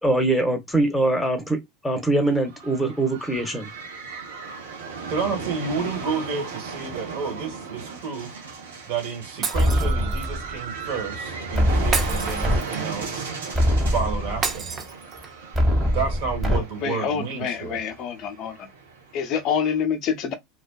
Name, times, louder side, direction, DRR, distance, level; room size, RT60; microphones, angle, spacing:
voice 1, 0.0-3.7, right 2 dB, 10° left, 0.9 m, -23 dB
sound 1, 2.1-19.8, right 5 dB, 80° right, 0.7 m, -36 dB
voice 2, 5.1-8.3 8.9-13.3 13.9-14.8 15.9-17.8, right 5 dB, 60° right, 1.2 m, -30 dB
Shatter, 9.4-10.3 11.9-13.0 14.4-15.4, right 5 dB, 35° right, 0.7 m, -30 dB
sound 2, 9.5-10.6 11.5-12.6 13.0-13.1 13.5-14.6 15.5-16.6, equal, 15° right, 1.3 m, -22 dB
voice 3, 16.5-18.7 19.1-20.3, left 7 dB, 50° left, 0.6 m, -27 dB
2.4 x 2.3 x 2.3 m
hypercardioid pair, 85°, 0 cm